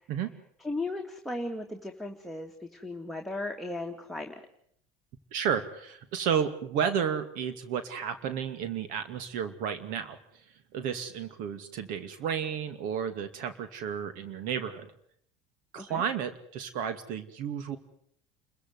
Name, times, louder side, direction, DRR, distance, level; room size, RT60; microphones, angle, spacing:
voice 1, 0.6-4.4 15.8-16.0, left 2 dB, ahead, 1 dB, 2.8 m, -36 dB
voice 2, 5.3-10.4 10.7-14.9 15.7-17.8, right 8 dB, 65° right, 10 dB, 2.4 m, -32 dB
29.5 x 15.0 x 9.7 m, 0.68 s
supercardioid pair, 95°, 15 cm